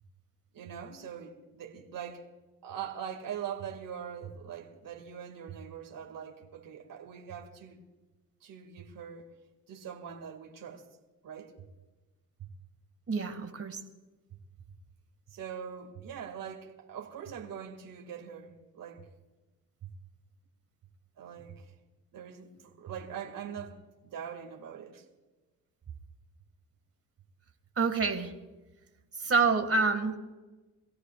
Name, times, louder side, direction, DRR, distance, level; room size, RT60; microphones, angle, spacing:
voice 1, 0.5-2.2 2.6-7.8 8.4-9.3 9.7-10.9 11.2-11.5 12.4-12.5 15.3-19.1 19.8-19.9 21.2-21.7 22.1-25.1, right 8 dB, 65° right, 2.4 m, -42 dB
voice 2, 13.1-13.8 27.8-28.3 29.1-30.2, right 4 dB, 40° right, 2.2 m, -27 dB
24.5 x 17.0 x 2.5 m
cardioid pair, 95°, 36 cm